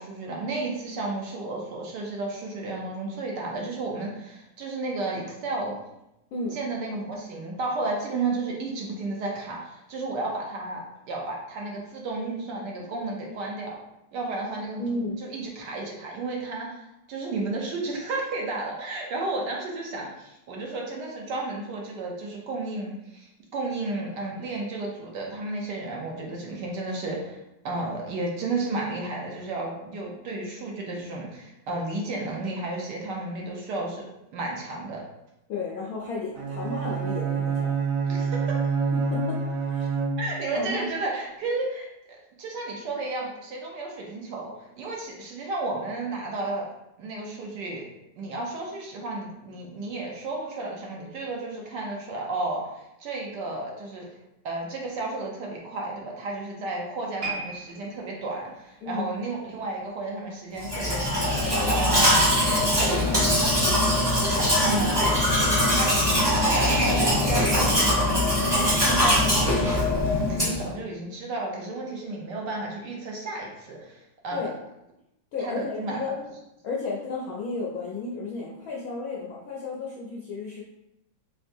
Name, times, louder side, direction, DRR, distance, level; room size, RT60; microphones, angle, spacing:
voice 1, 0.0-5.8 6.5-13.8 14.1-14.8 15.2-27.4 27.6-34.0 34.3-35.0 38.0-38.6 40.2-41.9 42.4-46.7 47.0-47.8 48.2-54.0 54.4-68.1 68.5-69.8 70.3-74.5 75.4-76.0, right 2 dB, 70° right, -1 dB, 1.2 m, -33 dB
voice 2, 6.3-6.7 14.8-15.2 35.5-37.8 38.9-39.4 39.7-39.9 40.5-40.9 58.8-59.1 61.6-62.0 74.3-74.5 75.3-76.2 76.6-80.6, left 3 dB, 70° left, -4 dB, 0.8 m, -33 dB
Bowed string instrument, 36.4-40.6, right 4 dB, 90° right, 1.5 m, -27 dB
sound 1, 57.2-60.5 60.8-61.1 61.7-61.8, right 3 dB, 45° right, 1.4 m, -39 dB
Domestic sounds home sounds, 60.6-70.7, left 1 dB, 20° right, 0.8 m, -22 dB
3.6 x 3.4 x 2.6 m, 0.87 s
omnidirectional pair, 2.1 m